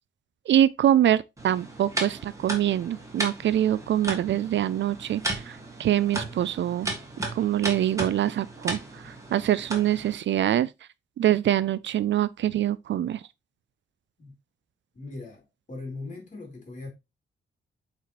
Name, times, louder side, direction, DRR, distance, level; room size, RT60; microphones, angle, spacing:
voice 1, 0.5-6.9 7.3-10.7 11.2-13.2, right 11 dB, 65° right, 0.4 m, -24 dB
sound 1, 1.4-10.2, right 2 dB, 15° right, 1.9 m, -35 dB
voice 2, 14.9-16.9, left 3 dB, 40° left, 3.4 m, -40 dB
8.3 x 4.5 x 3.0 m
wide cardioid pair, 150°, 20 cm